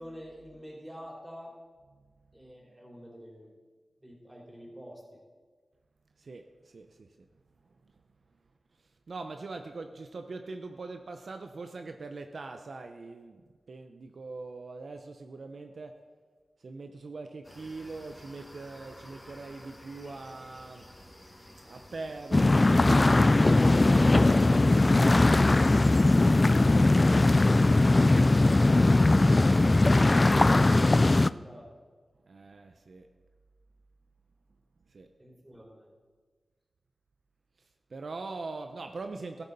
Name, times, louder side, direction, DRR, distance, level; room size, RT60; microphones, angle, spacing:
voice 1, 0.0-1.5 2.3-3.6 4.0-5.2 29.9-31.7 35.2-35.9, equal, 10° right, -3 dB, 3.9 m, -48 dB
voice 2, 6.2-7.2 7.6-7.8 8.8-15.9 16.6-20.9 21.7-23.1 32.2-33.1 34.9-35.1 37.6-39.4, right 3 dB, 65° right, 5 dB, 0.7 m, -43 dB
sound 1, 17.4-31.2, left 1 dB, 15° left, 2.7 m, -50 dB
sound 2, 22.3-31.3, left 2 dB, 30° left, 0.3 m, -20 dB
13.5 x 13.5 x 4.1 m, 1.5 s
cardioid pair, 60°, 0 cm